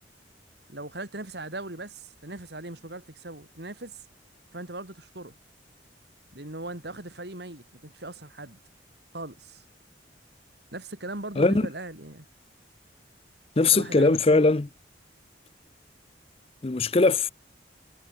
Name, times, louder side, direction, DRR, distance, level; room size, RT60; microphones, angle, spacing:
voice 1, 0.7-4.0 4.5-5.3 6.3-8.6 9.1-9.6 10.7-12.2 13.7-14.5, right 2 dB, 60° right, 2.9 m, -39 dB
voice 2, 11.4-11.7 13.6-14.7 16.6-17.3, left 3 dB, 30° left, 0.5 m, -20 dB
head